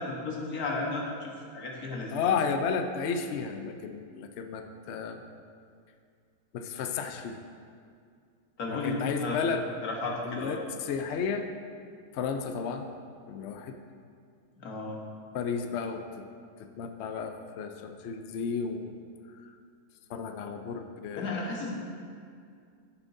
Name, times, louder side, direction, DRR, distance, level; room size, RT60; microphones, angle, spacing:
voice 1, 0.0-2.2 8.6-9.4 9.8-10.6 14.6-15.0 21.2-21.8, left 2 dB, 60° left, -1 dB, 1.7 m, -34 dB
voice 2, 2.1-5.2 6.5-7.4 8.7-9.6 10.2-11.5 12.1-12.9 13.3-13.8 15.3-16.2 16.8-19.0 20.1-21.5, left 6 dB, 85° left, 6 dB, 0.6 m, -33 dB
14.0 x 7.1 x 2.7 m, 2.3 s
omnidirectional pair, 1.9 m